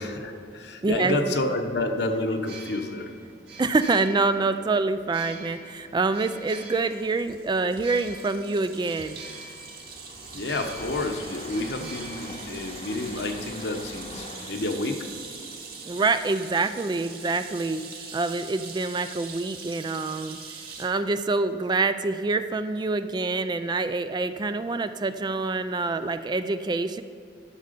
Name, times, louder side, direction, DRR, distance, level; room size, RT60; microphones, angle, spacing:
voice 1, 0.0-3.1 10.3-15.0, left 2 dB, 65° left, 5 dB, 1.0 m, -29 dB
voice 2, 0.8-1.2 3.6-9.2 11.8-11.9 15.8-17.8 18.1-20.4 20.8-27.0, right 3 dB, 25° right, 11 dB, 0.3 m, -26 dB
sound 1, 2.3-13.1, right 3 dB, 80° right, 2.1 m, -46 dB
sound 2, 6.6-20.9, right 5 dB, 60° right, 1.7 m, -43 dB
Train, 7.2-7.5 7.8-7.9 8.3-18.4, left 2 dB, 40° left, 0.9 m, -45 dB
11.5 x 6.7 x 5.1 m, 2.4 s
head